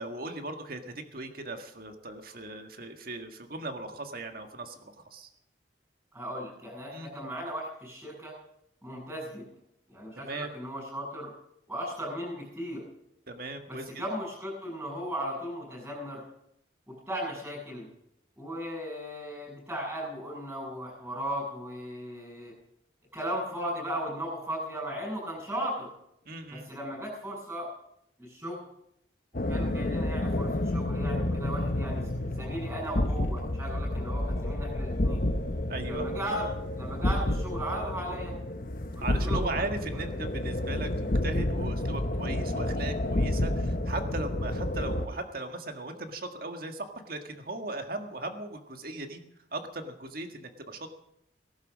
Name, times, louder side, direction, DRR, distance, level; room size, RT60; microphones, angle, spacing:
voice 1, 0.0-5.3 6.9-7.2 10.2-10.5 13.3-13.9 26.3-26.7 35.7-36.1 39.0-49.2 49.5-50.9, right 2 dB, 50° right, 6 dB, 1.7 m, -38 dB
voice 2, 6.1-8.3 8.8-9.4 9.9-11.3 11.7-12.8 13.7-16.2 16.9-17.9 18.4-22.5 23.1-25.9 26.5-27.7 28.2-28.7 29.5-35.2 35.9-36.5 36.8-38.4 39.0-39.5, equal, 10° right, -8 dB, 7.1 m, -36 dB
sound 1, 29.3-45.1, left 1 dB, 45° left, 1.0 m, -30 dB
19.0 x 11.5 x 6.3 m, 0.77 s
head